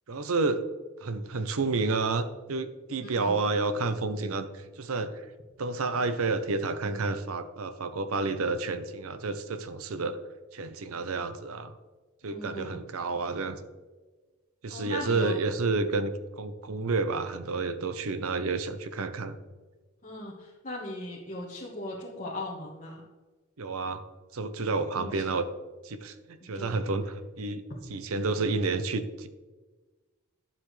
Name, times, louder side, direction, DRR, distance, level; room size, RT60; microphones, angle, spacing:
voice 1, 0.1-0.6 1.0-5.2 5.6-10.2 10.5-11.7 12.2-13.6 14.6-19.4 23.6-24.0 24.3-25.4 25.8-29.3, right 3 dB, 80° right, 11 dB, 0.7 m, -30 dB
voice 2, 3.0-3.4 12.2-12.8 14.7-15.4 20.0-23.0 24.9-25.1 26.5-26.8, left 1 dB, 35° left, -5 dB, 1.4 m, -38 dB
11.0 x 7.3 x 3.3 m, 1.3 s
head